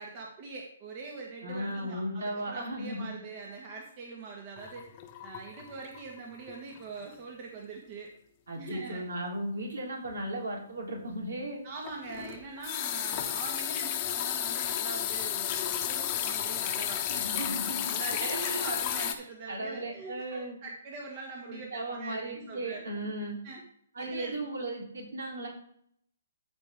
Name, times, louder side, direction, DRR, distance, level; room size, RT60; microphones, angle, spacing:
voice 1, 0.0-4.9 5.2-8.1 8.5-9.0 11.6-22.8 23.4-23.6 24.0-24.4, right 3 dB, 35° right, -1 dB, 1.7 m, -43 dB
voice 2, 1.4-3.1 8.5-11.6 17.1-18.7 19.5-20.6 21.5-23.4 23.9-25.5, right 1 dB, 75° right, -2 dB, 3.7 m, -36 dB
sound 1, 4.6-6.2 6.5-6.8 7.1-7.2 11.8-19.1, left 11 dB, 30° left, 1.0 m, -32 dB
14.0 x 4.7 x 3.7 m, 0.66 s
hypercardioid pair, 135°, 0 cm